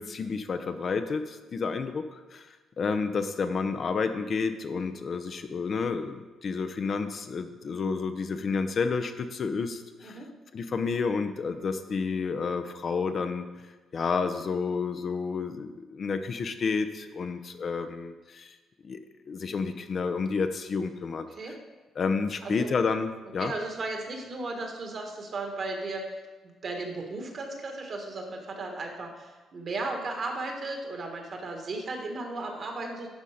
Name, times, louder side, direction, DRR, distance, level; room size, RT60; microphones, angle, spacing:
voice 1, 0.0-2.5 2.8-10.2 10.5-13.5 13.9-18.5 18.8-19.0 19.3-21.6 22.0-23.5, left 5 dB, 50° left, 8 dB, 0.6 m, -30 dB
voice 2, 22.4-22.8 23.4-26.0 26.6-33.1, right 2 dB, 50° right, 3 dB, 1.6 m, -35 dB
11.5 x 4.0 x 5.0 m, 1.2 s
cardioid pair, 90°, 0 cm